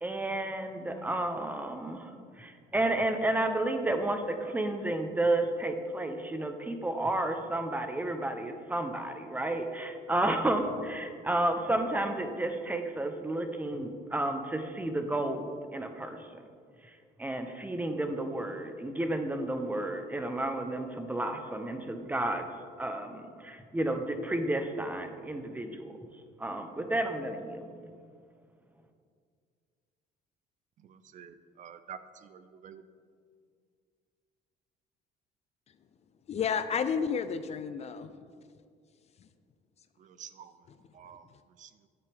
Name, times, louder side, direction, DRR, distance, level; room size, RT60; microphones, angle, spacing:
voice 1, 0.0-16.5 16.8-22.4 22.8-26.0 26.4-27.9, right 1 dB, 10° right, 0.7 m, -32 dB
voice 2, 31.1-32.0 32.3-32.8 40.2-40.5 41.0-41.2 41.6-41.7, right 8 dB, 50° right, 0.4 m, -47 dB
voice 3, 36.3-38.1 39.2-39.3 40.7-40.8, left 6 dB, 40° left, 0.4 m, -31 dB
10.0 x 8.2 x 3.5 m
cardioid pair, 110°, 17 cm